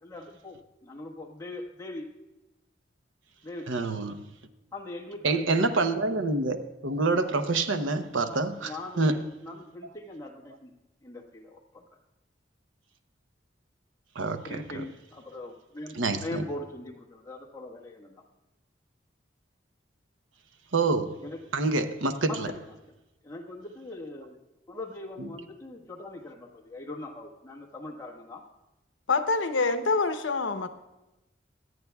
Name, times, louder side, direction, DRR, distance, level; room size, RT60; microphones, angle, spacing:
voice 1, 0.0-2.1 3.4-4.0 4.7-5.7 8.3-10.7 11.0-11.8 14.4-18.2 21.2-21.4 22.2-22.7 23.2-24.4 24.7-28.4, left 2 dB, 20° left, 1.4 m, -41 dB
voice 2, 3.7-4.3 5.2-9.2 14.1-14.8 15.9-16.4 20.7-21.2 21.5-22.5 25.2-25.3, right 3 dB, 90° right, 0.8 m, -27 dB
voice 3, 29.1-30.7, left 4 dB, 80° left, 0.8 m, -26 dB
24.5 x 9.3 x 2.3 m
head